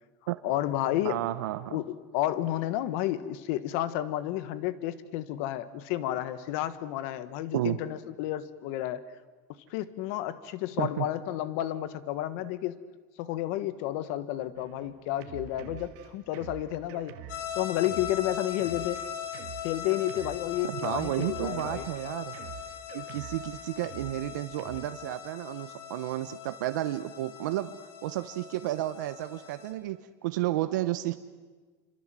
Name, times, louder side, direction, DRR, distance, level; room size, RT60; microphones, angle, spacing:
voice 1, 0.4-1.2 1.7-9.0 9.7-12.8 13.2-17.2 17.5-19.0 19.6-21.9, left 13 dB, 50° left, 14 dB, 1.3 m, -31 dB
voice 2, 1.0-1.8 7.5-7.8 10.8-11.1 20.6-22.3 22.9-27.7 28.0-31.2, right 15 dB, 90° right, 11 dB, 1.0 m, -32 dB
Drum kit, 14.5-24.8, right 11 dB, 45° right, 1.9 m, -46 dB
sound 1, 17.3-29.7, left 9 dB, 75° left, 4.2 m, -40 dB
27.5 x 25.5 x 7.6 m, 1.4 s
supercardioid pair, 180°, 10 cm